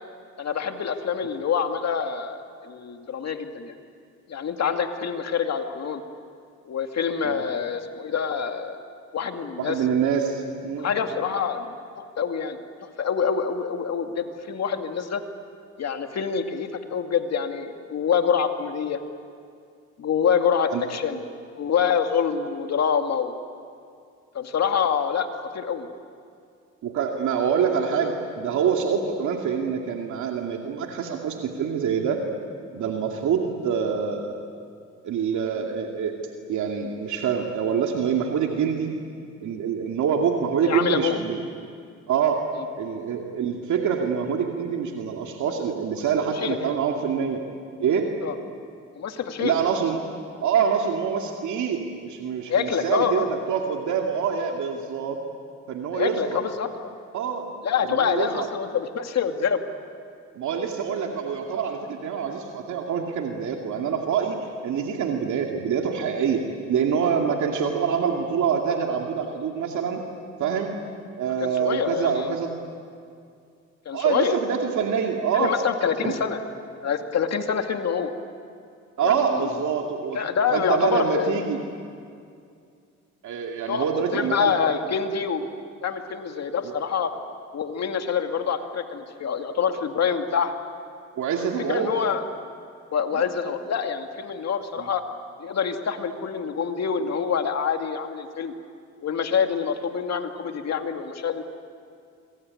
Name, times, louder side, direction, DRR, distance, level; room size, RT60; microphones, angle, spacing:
voice 1, 0.4-3.7 4.3-6.0 6.7-8.8 9.1-9.8 10.8-11.7 12.2-15.2 15.8-19.0 20.0-21.2 21.6-23.4 24.3-25.9 40.6-41.2 46.4-46.6 48.2-48.4 49.0-49.5 52.5-53.3 55.9-57.0 57.6-59.6 71.4-72.3 73.9-74.4 75.3-76.4 76.8-78.1 79.0-79.5 80.1-81.5 83.7-85.5 85.8-87.1 87.5-90.5 91.4-92.2 92.9-95.0 95.4-98.5 99.0-101.4, left 7 dB, 60° left, 5 dB, 2.4 m, -26 dB
voice 2, 9.6-10.9 20.7-20.8 26.8-32.2 32.7-34.4 35.0-36.2 36.5-38.9 39.4-41.4 42.1-42.4 42.8-47.4 47.8-48.1 49.4-50.0 50.4-55.2 55.7-56.4 57.1-57.5 57.9-58.5 60.4-66.4 66.7-70.0 70.4-70.7 71.2-72.5 73.9-75.5 76.0-76.2 79.0-80.2 80.5-81.6 83.2-84.5 86.6-86.7 91.1-91.9 93.1-93.2 94.8-94.9, right 7 dB, 75° right, 1 dB, 2.5 m, -25 dB
26.0 x 23.0 x 9.7 m, 2.3 s
cardioid pair, 90°, 30 cm